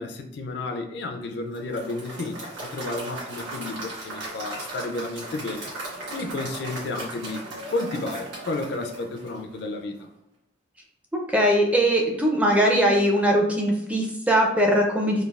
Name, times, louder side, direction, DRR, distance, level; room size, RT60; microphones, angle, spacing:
voice 1, 0.0-5.7 6.1-7.4 7.7-9.9, left 2 dB, 60° left, 5 dB, 0.4 m, -32 dB
Applause / Crowd, 1.5-9.7, right 2 dB, 90° right, 1.2 m, -37 dB
voice 2, 11.1-15.2, equal, 5° right, 0 dB, 0.4 m, -21 dB
3.2 x 2.3 x 2.3 m, 0.85 s
head